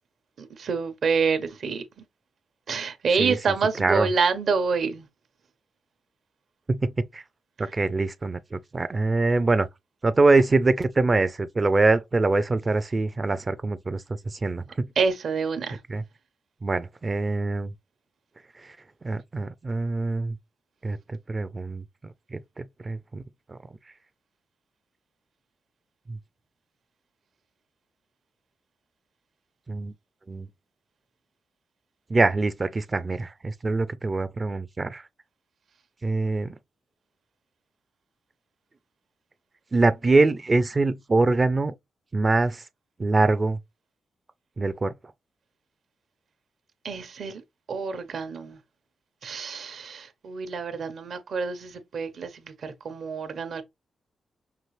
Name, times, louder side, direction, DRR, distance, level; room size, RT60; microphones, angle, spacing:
voice 1, 0.4-1.8 2.7-5.1 15.0-15.8 46.8-47.4 47.7-48.6 49.2-53.6, right 5 dB, 70° right, 0.9 m, -27 dB
voice 2, 3.8-4.1 6.7-7.2 7.6-9.7 10.0-14.9 15.9-16.0 16.6-17.7 18.6-18.8 19.0-20.4 20.8-21.8 22.3-23.2 23.5-23.6 26.1-26.2 29.7-29.9 30.3-30.5 32.1-35.0 36.0-36.6 39.7-41.7 42.1-42.6 43.0-43.6 44.6-44.9, right 3 dB, 35° right, 0.4 m, -24 dB
5.8 x 2.5 x 3.2 m
cardioid pair, 75°, 0 cm